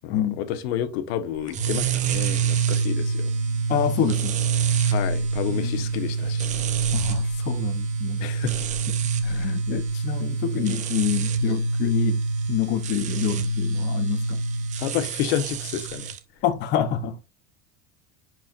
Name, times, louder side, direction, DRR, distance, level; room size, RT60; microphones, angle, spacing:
voice 1, 0.0-3.3 4.8-6.5 8.2-8.6 14.8-16.1, left 10 dB, 75° left, 1.3 m, -30 dB
sound 1, 1.5-16.2, right 5 dB, 20° right, 0.7 m, -26 dB
voice 2, 3.7-4.4 5.5-5.8 6.9-8.2 9.2-12.2 12.5-14.4 16.4-17.2, left 9 dB, 35° left, 0.8 m, -27 dB
10.5 x 4.7 x 2.5 m
cardioid pair, 170°, 32 cm